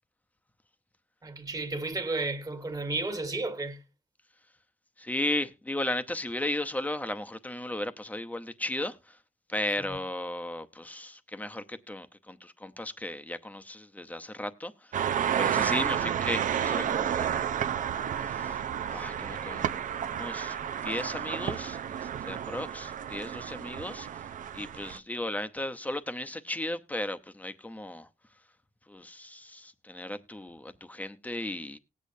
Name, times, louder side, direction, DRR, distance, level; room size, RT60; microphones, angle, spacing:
voice 1, 1.2-3.8, right 3 dB, 25° right, 1.5 m, -32 dB
voice 2, 5.0-9.2 9.5-14.9 15.4-17.8 18.2-18.6 18.9-20.6 20.8-24.3 24.5-28.1 28.9-31.8, left 1 dB, 10° left, 0.8 m, -35 dB
sound 1, 14.9-25.0, right 9 dB, 80° right, 0.6 m, -31 dB
18.5 x 8.4 x 2.7 m
wide cardioid pair, 105°, 13 cm